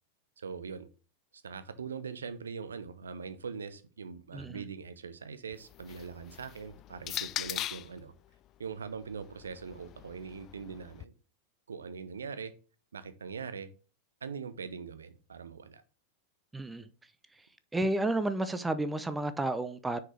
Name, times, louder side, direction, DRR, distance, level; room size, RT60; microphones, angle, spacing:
voice 1, 0.4-0.9 1.4-8.1 8.6-11.1 11.7-12.5 12.9-13.7 14.2-15.8, right 5 dB, 70° right, 0.8 m, -42 dB
voice 2, 4.3-4.6 16.5-16.9 17.4-17.5 17.7-20.0, right 2 dB, 10° right, 0.6 m, -31 dB
sound 1, 5.5-8.0 8.9-11.0, left 13 dB, 35° left, 0.3 m, -41 dB
9.7 x 4.7 x 3.4 m
figure-of-eight pair, 90°, 0 cm